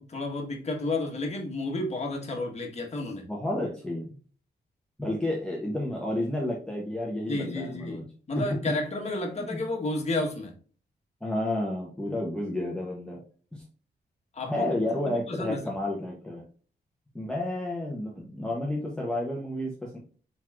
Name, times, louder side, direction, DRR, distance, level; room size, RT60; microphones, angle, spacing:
voice 1, 0.0-3.2 7.3-10.5 14.3-14.7 15.0-15.6, left 2 dB, 40° left, 1 dB, 1.3 m, -31 dB
voice 2, 3.2-4.1 5.0-8.1 9.4-9.6 11.2-13.2 13.5-13.6 14.5-16.4 17.1-20.0, left 1 dB, 5° left, -3 dB, 0.8 m, -31 dB
4.5 x 4.0 x 2.4 m, 0.42 s
wide cardioid pair, 135°, 17 cm